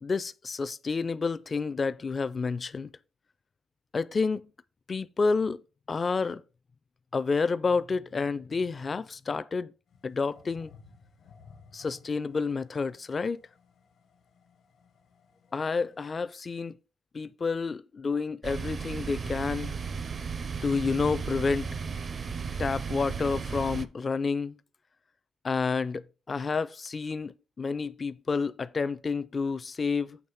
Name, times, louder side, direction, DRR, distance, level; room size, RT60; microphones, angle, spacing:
voice 1, 0.0-2.9 3.9-4.5 4.9-5.6 5.9-6.4 7.1-9.7 10.0-10.7 11.7-13.4 15.5-16.8 17.1-19.8 20.6-21.7 22.6-24.6 25.4-30.2, left 4 dB, 35° left, 0.4 m, -29 dB
sound 1, 9.9-16.0, left 5 dB, 70° left, 1.3 m, -57 dB
sound 2, 18.4-23.9, right 5 dB, 40° right, 0.5 m, -35 dB
7.2 x 3.0 x 5.6 m
cardioid pair, 90°, 0 cm